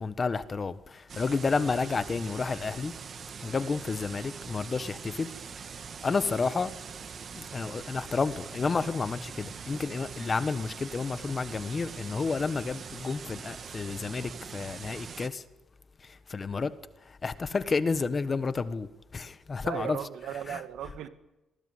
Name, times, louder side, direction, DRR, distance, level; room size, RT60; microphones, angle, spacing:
voice 1, 0.0-2.9 3.4-5.3 6.0-6.7 7.3-15.4 16.3-16.7 17.2-18.9 19.1-20.0 20.5-20.6, left 4 dB, 25° left, 13 dB, 1.4 m, -30 dB
sound 1, 1.1-15.3, right 6 dB, 40° right, 1.6 m, -43 dB
voice 2, 19.6-21.1, right 10 dB, 90° right, 10 dB, 2.4 m, -36 dB
27.0 x 19.5 x 9.8 m, 0.97 s
cardioid pair, 155°, 0 cm